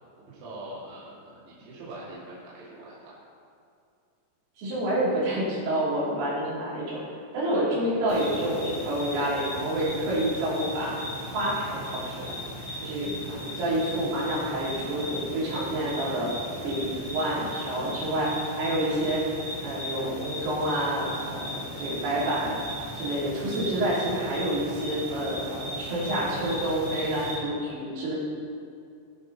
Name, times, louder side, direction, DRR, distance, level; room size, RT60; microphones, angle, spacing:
voice 1, 0.3-3.1, right 1 dB, 70° right, -8 dB, 4.6 m, -43 dB
voice 2, 4.6-7.0 7.3-10.9 11.3-12.4 12.8-16.3 16.6-19.2 19.6-22.6 23.0-28.1, right 1 dB, 85° right, -9 dB, 5.9 m, -28 dB
sound 1, 8.1-27.3, equal, 20° left, 0.9 m, -37 dB
18.5 x 6.6 x 4.1 m, 2.4 s
omnidirectional pair, 5.6 m